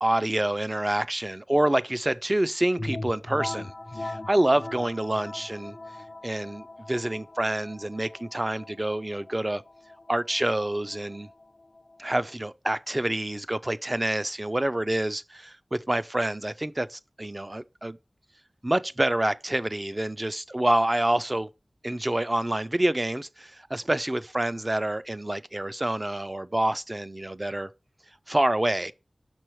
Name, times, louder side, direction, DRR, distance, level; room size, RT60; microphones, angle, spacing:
voice 1, 0.0-5.8 6.2-9.6 10.1-11.3 12.0-18.0 18.6-21.5 21.8-27.7 28.3-28.9, right 1 dB, 25° right, 0.4 m, -27 dB
sound 1, 2.8-12.3, left 2 dB, 45° left, 0.4 m, -40 dB
6.2 x 4.5 x 4.7 m
wide cardioid pair, 55°, 0 cm